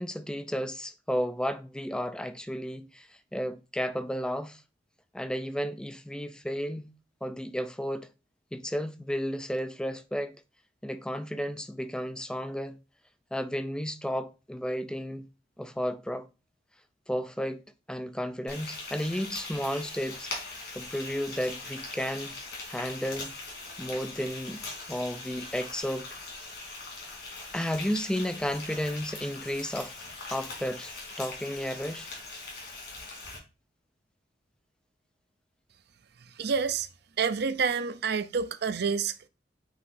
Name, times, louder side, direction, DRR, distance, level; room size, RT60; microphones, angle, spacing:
voice 1, 0.0-4.6 5.1-6.9 7.2-8.1 8.5-10.4 10.8-12.8 13.3-15.3 15.6-16.3 17.1-17.6 17.9-20.3 20.7-22.4 22.7-23.3 23.8-24.6 24.9-26.1 27.5-30.0 30.3-32.1, equal, 5° left, 0.5 m, -33 dB
Frying (food), 18.5-33.4, left 3 dB, 65° left, 3.5 m, -41 dB
voice 2, 36.4-36.9 37.2-39.3, right 5 dB, 65° right, 0.6 m, -28 dB
8.5 x 5.9 x 2.6 m
head